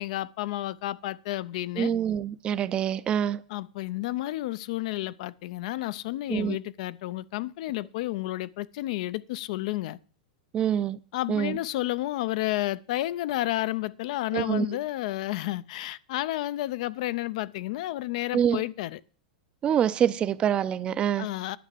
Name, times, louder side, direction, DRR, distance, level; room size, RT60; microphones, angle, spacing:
voice 1, 0.0-1.9 3.5-10.0 11.1-19.0 21.2-21.6, left 16 dB, 55° left, 0.5 m, -31 dB
voice 2, 1.8-3.4 6.3-6.6 10.5-11.0 11.3-11.6 14.3-14.7 18.3-18.6 19.6-21.3, right 9 dB, 25° right, 0.5 m, -25 dB
10.0 x 5.8 x 8.2 m
supercardioid pair, 145°, 4 cm